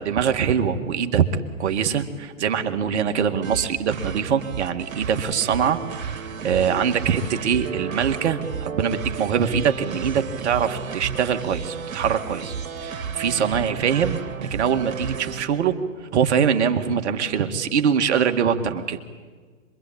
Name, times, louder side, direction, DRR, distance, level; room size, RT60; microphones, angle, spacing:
voice 1, 0.0-12.5 12.8-14.2 14.5-15.8 16.1-19.0, right 7 dB, 55° right, 7 dB, 2.0 m, -23 dB
sound 1, 3.4-15.4, right 6 dB, 70° right, 3.0 m, -32 dB
26.0 x 23.0 x 8.8 m, 1.5 s
hypercardioid pair, 135°, 41 cm